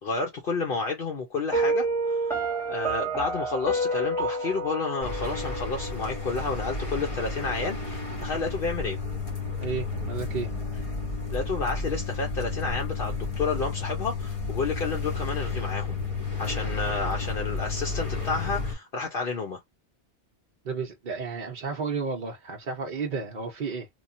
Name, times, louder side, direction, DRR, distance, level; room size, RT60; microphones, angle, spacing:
voice 1, 0.0-9.0 11.3-16.0 16.4-19.6, left 4 dB, 60° left, 1.0 m, -31 dB
Piano, 1.5-6.5, right 2 dB, 5° left, 1.0 m, -29 dB
sound 1, 5.0-18.7, left 4 dB, 35° left, 0.8 m, -32 dB
voice 2, 9.6-10.5 20.6-23.9, right 5 dB, 50° right, 0.8 m, -32 dB
3.0 x 2.2 x 2.6 m
omnidirectional pair, 1.1 m